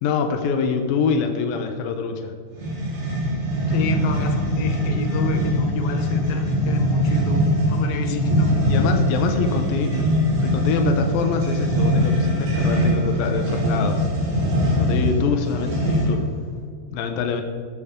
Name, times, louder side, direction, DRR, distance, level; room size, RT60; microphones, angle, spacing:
voice 1, 0.0-2.3 8.1-8.2 8.7-10.1 10.4-14.0 14.7-16.2 16.9-17.4, left 5 dB, 85° left, 5 dB, 2.0 m, -25 dB
sound 1, 2.5-16.3, equal, 45° right, 5.3 m, -22 dB
voice 2, 3.7-7.4 7.7-8.5, left 5 dB, 70° left, 5 dB, 2.4 m, -30 dB
15.5 x 13.0 x 3.8 m, 2.2 s
omnidirectional pair, 5.6 m